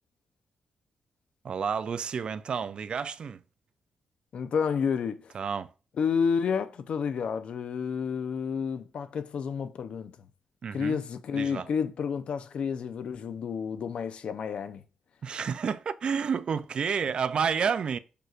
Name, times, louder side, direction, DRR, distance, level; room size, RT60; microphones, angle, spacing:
voice 1, 1.4-3.4 5.3-5.7 10.6-11.0 11.3-11.7 15.2-18.0, right 6 dB, 45° right, 0.4 m, -30 dB
voice 2, 4.3-5.3 6.0-10.3 10.7-14.8, left 6 dB, 60° left, 0.7 m, -30 dB
6.7 x 6.3 x 2.5 m
cardioid pair, 135°, 2 cm